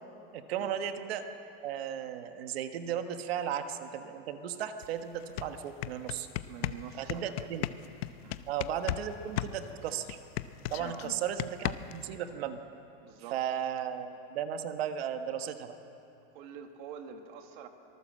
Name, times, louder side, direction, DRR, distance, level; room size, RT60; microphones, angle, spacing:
voice 1, 0.3-1.3 1.6-6.3 7.0-7.7 8.5-10.2 10.7-12.6 13.3-15.7, right 9 dB, 85° right, 7 dB, 1.5 m, -35 dB
sound 1, 4.8-4.9 5.2-9.1 9.4-12.1, left 14 dB, 85° left, 0.9 m, -35 dB
voice 2, 6.4-7.5 8.2-8.4 10.9-11.1 13.0-13.4 16.3-17.7, right 7 dB, 55° right, 5 dB, 2.0 m, -46 dB
24.5 x 18.5 x 7.7 m, 2.9 s
supercardioid pair, 175°, 30 cm